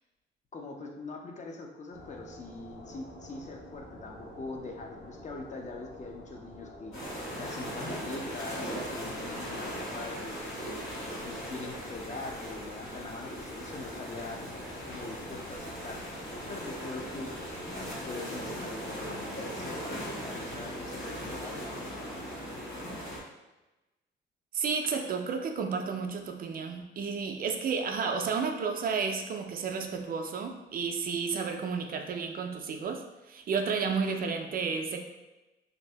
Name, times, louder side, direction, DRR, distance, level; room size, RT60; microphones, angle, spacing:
voice 1, 0.5-7.0 7.4-10.8 11.2-14.4 14.8-16.1 16.5-17.3 17.8-21.6, left 3 dB, 35° left, 1 dB, 0.5 m, -42 dB
sound 1, 1.9-18.2, left 2 dB, 55° left, 1.0 m, -49 dB
sound 2, 6.9-23.2, equal, 85° left, 1.4 m, -39 dB
voice 2, 24.5-35.0, right 5 dB, 50° right, 4 dB, 0.4 m, -32 dB
2.6 x 2.6 x 3.2 m, 1.0 s
cardioid pair, 90°, 20 cm